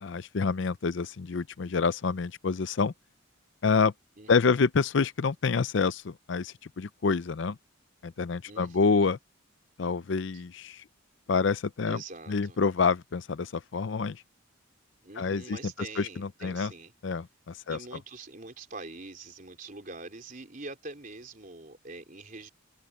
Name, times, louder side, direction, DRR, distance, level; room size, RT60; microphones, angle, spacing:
voice 1, 0.0-2.9 3.6-3.9 4.3-7.6 8.0-9.2 9.8-10.8 11.3-12.0 12.3-14.2 15.2-15.6 16.0-16.7 17.0-17.8, left 5 dB, 65° left, 0.5 m, -27 dB
voice 2, 8.5-9.1 10.3-10.4 11.8-12.6 15.0-16.9 17.7-22.5, right 3 dB, 40° right, 4.2 m, -44 dB
open air
head